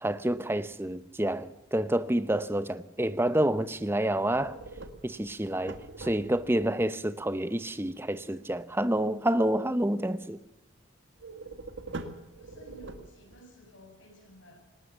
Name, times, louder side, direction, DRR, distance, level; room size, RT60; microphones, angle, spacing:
voice 1, 0.0-4.6 5.0-10.4, right 1 dB, 10° right, 0.8 m, -28 dB
sound 1, 4.3-6.7 11.2-13.5, right 3 dB, 60° right, 1.8 m, -43 dB
voice 2, 12.3-14.6, right 1 dB, 65° left, 7.3 m, -53 dB
19.5 x 19.0 x 7.0 m
head